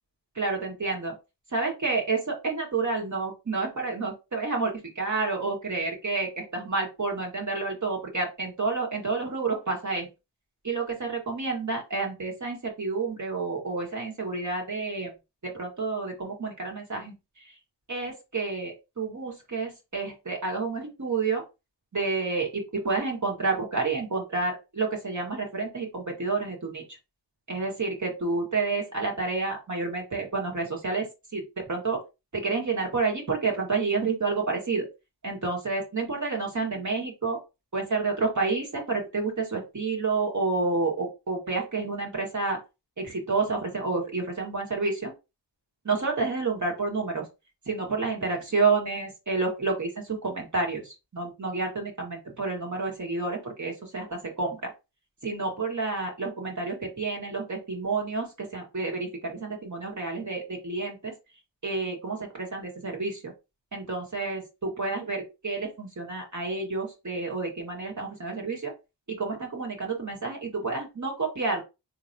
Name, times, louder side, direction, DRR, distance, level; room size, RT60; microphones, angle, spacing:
voice 1, 0.4-1.1 1.5-10.1 10.6-15.1 15.4-17.6 17.9-21.4 21.9-27.0 27.5-32.0 32.3-34.9 35.2-37.4 37.7-42.6 43.0-45.1 45.8-47.3 47.7-54.7 55.2-61.1 61.6-63.3 63.7-68.7 69.1-71.6, right 3 dB, 40° right, 0 dB, 1.8 m, -29 dB
4.0 x 3.0 x 2.8 m, 0.26 s
cardioid pair, 65°, 46 cm